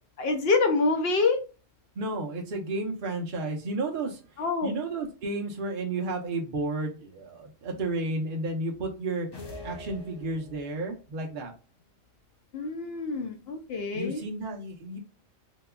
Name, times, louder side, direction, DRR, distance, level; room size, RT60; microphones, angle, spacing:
voice 1, 0.2-1.4 4.4-4.7 12.5-14.2, left 3 dB, 60° left, 5 dB, 0.8 m, -26 dB
voice 2, 2.0-9.3 9.6-11.5 13.9-15.0, right 2 dB, 45° right, 0 dB, 0.9 m, -32 dB
sound 1, 9.3-10.9, left 2 dB, 35° left, 0.4 m, -43 dB
3.4 x 2.9 x 2.3 m, 0.34 s
omnidirectional pair, 1.3 m